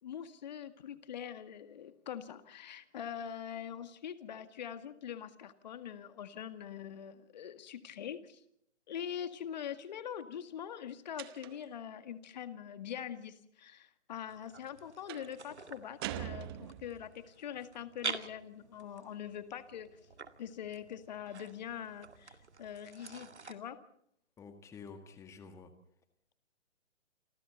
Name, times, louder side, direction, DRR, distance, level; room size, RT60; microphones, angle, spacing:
voice 1, 0.0-8.4 8.9-19.9 20.4-23.8, left 9 dB, 35° left, 10 dB, 1.9 m, -43 dB
sound 1, 11.2-11.8 15.1-15.4 16.0-17.1, right 12 dB, 20° right, 1.1 m, -42 dB
sound 2, 14.3-23.5, right 5 dB, 65° right, 2.2 m, -47 dB
voice 2, 24.4-25.7, left 5 dB, 10° left, 9 dB, 1.8 m, -50 dB
28.5 x 25.0 x 4.1 m, 0.70 s
figure-of-eight pair, 130°, 37 cm